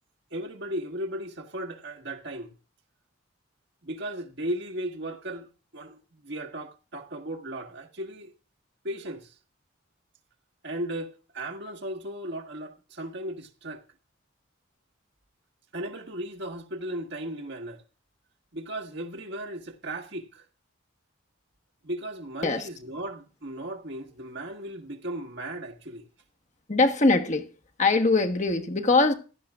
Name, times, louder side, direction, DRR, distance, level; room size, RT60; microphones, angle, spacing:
voice 1, 0.3-2.5 3.8-6.0 6.2-8.3 8.8-9.3 10.6-13.8 15.7-17.8 18.5-20.5 21.8-26.1, right 1 dB, 60° right, 1.6 m, -36 dB
voice 2, 26.7-27.5 27.8-29.1, left 3 dB, 35° left, 1.2 m, -22 dB
16.0 x 12.5 x 2.4 m
head